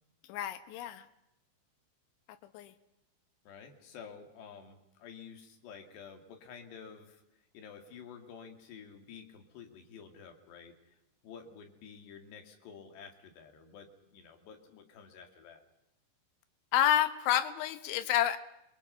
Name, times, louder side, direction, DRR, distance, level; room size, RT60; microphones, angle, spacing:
voice 1, 0.3-1.1 2.5-2.7 16.7-18.4, left 11 dB, 85° left, 11 dB, 3.5 m, -29 dB
voice 2, 3.4-11.0 11.2-15.6, left 6 dB, 70° left, 4 dB, 4.4 m, -51 dB
28.0 x 23.0 x 5.7 m, 0.86 s
omnidirectional pair, 5.3 m